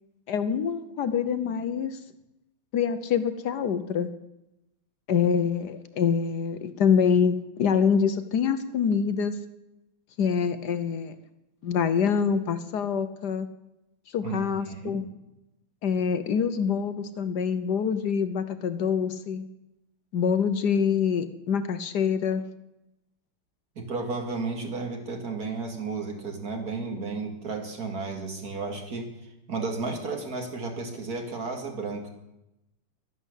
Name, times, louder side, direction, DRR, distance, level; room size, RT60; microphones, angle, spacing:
voice 1, 0.3-2.0 2.7-4.1 5.1-9.4 10.2-11.1 11.6-13.5 14.1-15.0 15.8-19.4 20.1-22.4, left 6 dB, 60° left, 11 dB, 1.2 m, -25 dB
voice 2, 14.2-15.0 23.8-29.1 29.5-32.1, right 4 dB, 45° right, 3 dB, 2.7 m, -33 dB
12.5 x 11.0 x 8.2 m, 0.90 s
omnidirectional pair, 2.3 m